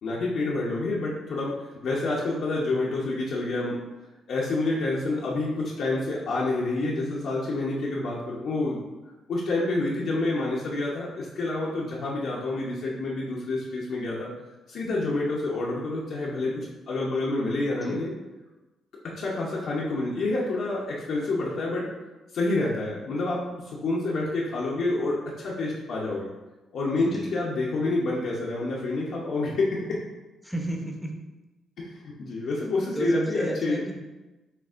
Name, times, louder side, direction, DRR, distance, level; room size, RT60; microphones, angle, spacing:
voice 1, 0.0-1.5 1.8-3.8 4.3-8.8 9.3-14.3 14.7-18.1 19.0-21.9 22.3-26.3 26.7-30.0 31.8-33.8, left 2 dB, 70° left, -5 dB, 0.8 m, -28 dB
voice 2, 27.0-27.3 30.4-31.2 32.9-34.0, right 1 dB, ahead, 0 dB, 0.8 m, -33 dB
6.6 x 2.6 x 2.5 m, 1.1 s
cardioid pair, 90°, 0 cm